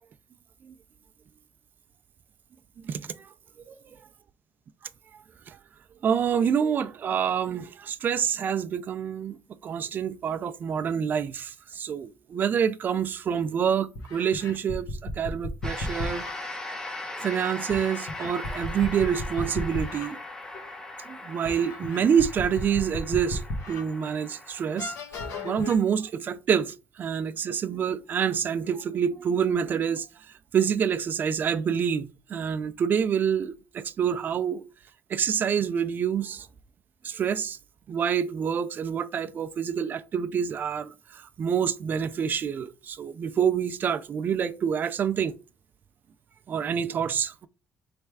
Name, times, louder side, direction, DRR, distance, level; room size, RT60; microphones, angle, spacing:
voice 1, 6.0-9.4 9.6-16.3 17.2-20.2 21.1-23.4 23.7-24.9 25.4-30.1 30.5-34.6 35.1-36.5 37.0-37.6 37.9-40.9 41.4-45.3 46.5-47.5, right 7 dB, 35° right, 0.4 m, -27 dB
sound 1, 13.3-13.4 14.0-16.3 17.7-20.1 20.5-20.7 21.5-23.8 24.3-24.4 24.8-25.8, left 2 dB, 70° left, 1.0 m, -34 dB
sound 2, 15.6-25.0, left 2 dB, 10° left, 0.6 m, -39 dB
3.4 x 3.2 x 4.6 m
cardioid pair, 145°, 5 cm